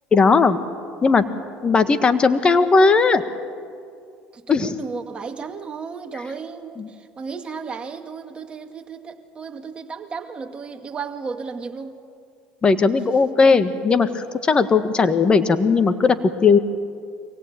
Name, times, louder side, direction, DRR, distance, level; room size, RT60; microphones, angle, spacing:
voice 1, 0.1-0.6 1.0-1.2 1.6-3.2 4.5-4.7 6.8-6.9 12.6-16.1 16.4-16.6, left 4 dB, 30° left, 10 dB, 1.5 m, -17 dB
voice 2, 4.3-12.0, right 5 dB, 30° right, 5 dB, 2.1 m, -34 dB
24.0 x 17.5 x 9.0 m, 2.3 s
supercardioid pair, 90°, 3 cm